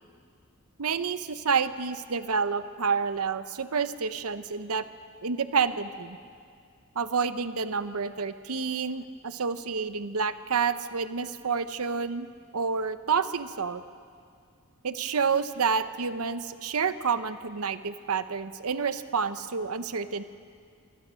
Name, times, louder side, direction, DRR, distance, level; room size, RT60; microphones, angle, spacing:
voice 1, 0.8-4.8 5.2-6.2 7.0-12.3 12.5-13.8 14.8-20.2, right 5 dB, 70° right, 12 dB, 0.8 m, -29 dB
27.0 x 25.5 x 6.3 m, 2.2 s
head